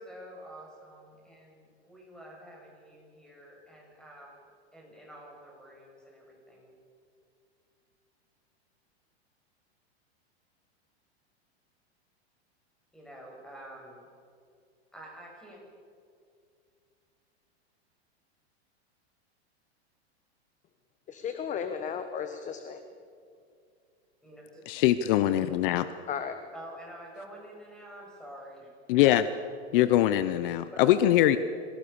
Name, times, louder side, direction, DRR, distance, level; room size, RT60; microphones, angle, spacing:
voice 1, 0.0-4.4 4.7-6.7 12.9-14.1 14.9-15.6 24.2-24.7 26.5-28.7 30.7-31.4, right 1 dB, ahead, -2 dB, 7.1 m, -48 dB
voice 2, 21.1-22.8 26.1-26.4, left 7 dB, 20° left, 8 dB, 1.3 m, -35 dB
voice 3, 24.7-25.9 28.9-29.3 29.7-31.4, left 13 dB, 55° left, 13 dB, 1.0 m, -22 dB
27.0 x 17.5 x 7.1 m, 2.4 s
supercardioid pair, 140°, 33 cm